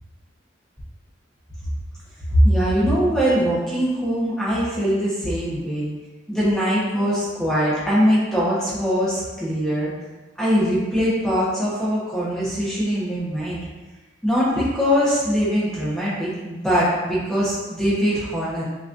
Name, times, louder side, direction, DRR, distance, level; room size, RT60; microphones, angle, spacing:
voice 1, 2.3-5.9 6.3-9.9 10.4-13.6 14.2-18.6, equal, 5° left, -9 dB, 1.1 m, -21 dB
6.1 x 3.1 x 2.6 m, 1.2 s
head